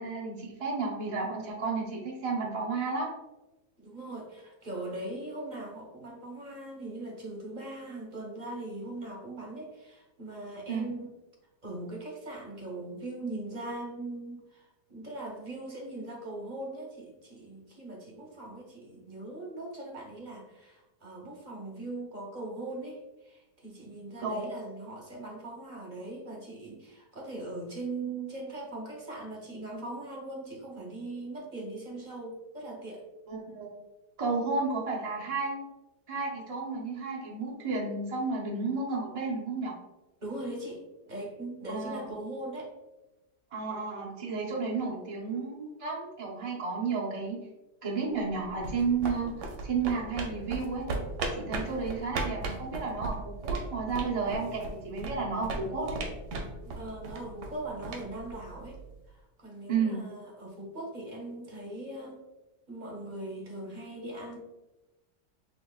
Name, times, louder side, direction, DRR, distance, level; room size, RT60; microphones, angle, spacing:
voice 1, 0.0-3.1 10.7-10.9 24.2-24.5 33.3-33.7 34.2-35.7 36.1-39.7 41.7-42.1 43.5-47.4 47.8-49.3 49.6-50.9 51.3-56.0 59.7-60.0, right 4 dB, 60° right, -4 dB, 0.3 m, -32 dB
voice 2, 3.8-11.1 11.6-33.0 40.2-42.7 56.6-58.8 59.1-62.2 62.7-64.4, right 2 dB, 35° right, -1 dB, 0.8 m, -40 dB
sound 1, 48.2-59.0, right 2 dB, 80° right, 1.3 m, -37 dB
6.1 x 2.8 x 2.3 m, 1.0 s
omnidirectional pair, 1.8 m